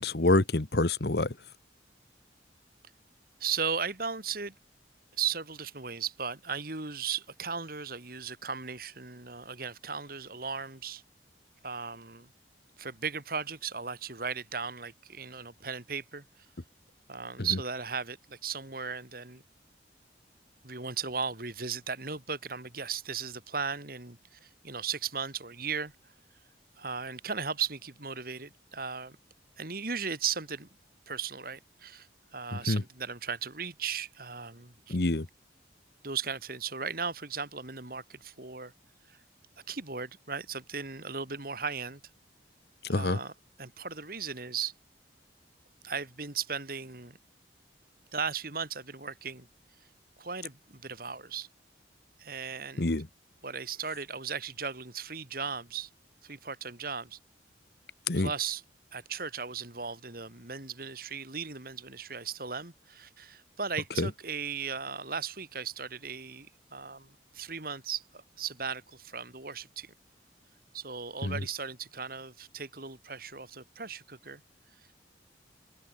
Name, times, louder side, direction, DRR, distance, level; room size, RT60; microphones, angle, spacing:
voice 1, 0.0-1.3 17.4-17.5 32.5-32.8 34.9-35.3 42.9-43.2 52.8-53.1 58.1-58.3 64.0-64.1 71.2-71.4, left 2 dB, 60° left, 1.2 m, -27 dB
voice 2, 3.4-4.5 5.2-11.0 11.6-12.3 12.8-16.5 17.1-19.4 20.6-25.9 26.8-29.2 29.6-30.7 31.1-35.0 36.0-38.7 39.1-39.2 39.7-42.0 42.9-43.3 43.6-44.7 45.8-47.2 48.1-49.5 50.2-51.5 52.2-52.9 53.4-55.9 56.2-57.2 58.1-58.6 58.9-69.9 70.7-74.4, right 6 dB, 50° right, 2.8 m, -36 dB
open air
head